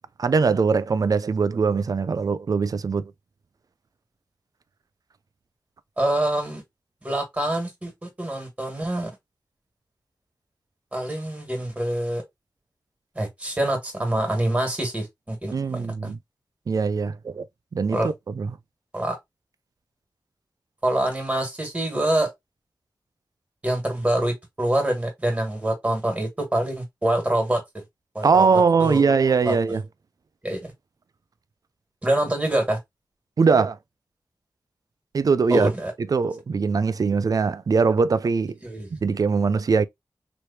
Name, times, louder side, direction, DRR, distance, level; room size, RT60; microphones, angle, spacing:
voice 1, 0.2-3.1 15.5-16.2 16.7-17.4 17.7-18.6 28.2-29.8 33.4-33.8 35.1-35.7 36.0-38.6 38.9-39.8, right 5 dB, 55° right, 0.3 m, -21 dB
voice 2, 6.0-6.6 7.0-7.9 8.2-9.1 10.9-12.2 13.1-16.1 17.9-18.1 18.9-19.1 20.8-22.3 23.6-27.6 28.1-28.5 28.8-29.0 29.4-29.5 30.4-30.7 32.0-32.8 35.5-35.9 38.6-38.9, right 1 dB, 20° right, 1.8 m, -25 dB
3.2 x 3.1 x 2.7 m
wide cardioid pair, 65°, 7 cm